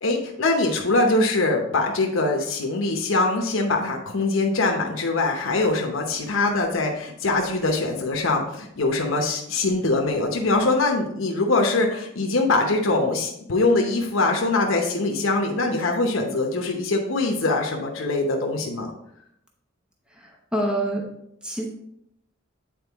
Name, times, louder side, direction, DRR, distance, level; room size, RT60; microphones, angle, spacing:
voice 1, 0.0-18.9, left 2 dB, 75° left, 1 dB, 0.9 m, -23 dB
voice 2, 20.5-21.1 21.4-21.7, right 1 dB, 5° right, -1 dB, 0.9 m, -25 dB
8.7 x 4.4 x 3.5 m, 0.76 s
head